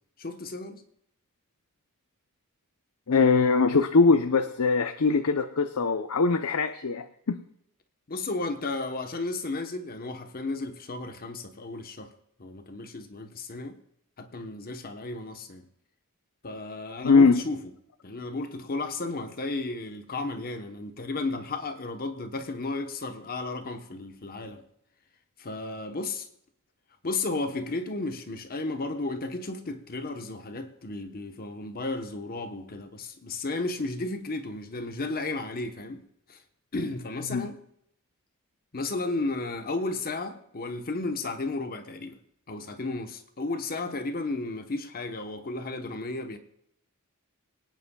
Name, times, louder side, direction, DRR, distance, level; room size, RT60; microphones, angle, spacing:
voice 1, 0.2-0.8 8.1-12.1 12.4-13.8 14.2-15.6 16.4-17.6 18.0-24.6 25.4-26.3 27.0-36.0 36.3-36.4 36.7-37.6 38.7-42.2 42.5-46.4, left 2 dB, 45° left, 1.0 m, -33 dB
voice 2, 3.1-7.4 17.0-17.4 37.3-37.5, left 4 dB, 80° left, 0.7 m, -22 dB
24.5 x 9.8 x 2.3 m
head